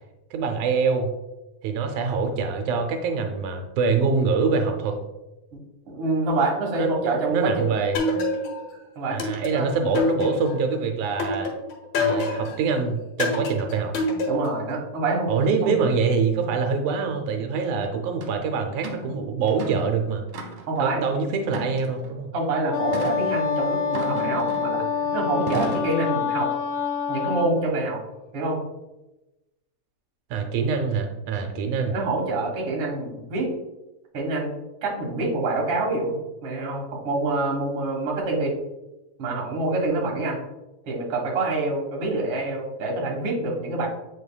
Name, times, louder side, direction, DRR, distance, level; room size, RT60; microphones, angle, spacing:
voice 1, 0.3-1.1 1.6-5.0 6.8-8.0 9.1-11.5 12.0-13.9 15.3-20.2 20.8-22.3 30.3-31.9, right 5 dB, 90° right, 4 dB, 2.1 m, -25 dB
voice 2, 5.9-7.7 9.0-9.2 9.5-9.7 14.3-15.3 15.6-15.7 20.7-21.0 22.3-24.8 25.1-26.5 27.1-28.0 28.3-28.6 31.9-33.5 34.1-34.5 34.8-38.5 39.2-40.4 40.9-43.9, right 2 dB, 55° right, -2 dB, 2.2 m, -26 dB
sound 1, 8.0-8.7 9.2-10.7 11.2-12.6 13.2-14.6, left 2 dB, 80° left, 2.5 m, -26 dB
sound 2, 18.2-18.3 18.8-19.1 19.5-19.9 20.3-20.8 21.5-22.1 22.9-23.2 23.9-24.8 25.5-26.0, right 6 dB, 70° right, 2.0 m, -34 dB
Wind instrument woodwind instrument, 22.7-27.6, left 6 dB, 60° left, 1.4 m, -26 dB
8.0 x 5.3 x 2.2 m, 1.0 s
omnidirectional pair, 3.3 m